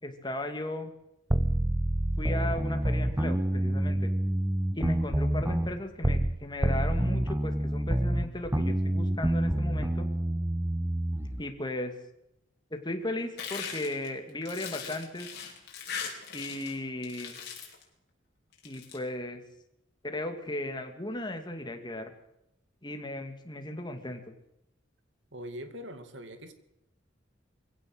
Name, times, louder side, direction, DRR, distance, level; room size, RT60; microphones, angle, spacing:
voice 1, 0.0-0.9 2.2-4.1 4.7-10.1 11.4-12.0 12.7-15.3 16.3-17.4 18.6-19.4 20.0-22.1 22.8-24.2, left 1 dB, 25° left, 5 dB, 2.5 m, -36 dB
sound 1, 1.3-6.4 6.6-11.4, right 1 dB, 10° right, 0.9 m, -28 dB
sound 2, 13.4-16.8 17.0-17.8 18.5-19.0, left 7 dB, 55° left, 5.2 m, -39 dB
voice 2, 25.3-26.5, equal, 70° right, 8 dB, 2.5 m, -42 dB
22.5 x 16.5 x 8.0 m, 0.82 s
head